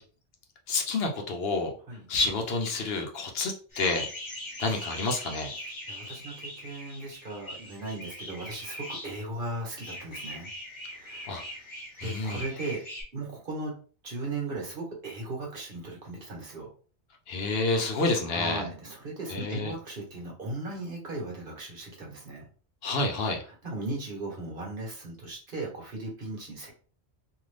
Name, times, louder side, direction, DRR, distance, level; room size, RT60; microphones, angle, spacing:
voice 1, 0.7-1.7 2.1-4.1 4.6-5.5 11.3-11.4 12.0-12.4 17.3-18.7 19.3-19.7 22.8-23.4, left 3 dB, 70° left, 3 dB, 0.9 m, -29 dB
sound 1, 3.7-9.1 9.8-13.0, left 1 dB, 25° left, 1.2 m, -41 dB
voice 2, 5.9-10.5 10.9-11.4 12.0-12.8 13.1-13.7 14.0-16.7 18.3-22.4 23.6-26.7, right 2 dB, 55° right, -2 dB, 1.2 m, -37 dB
2.6 x 2.5 x 3.3 m, 0.40 s
omnidirectional pair, 1.1 m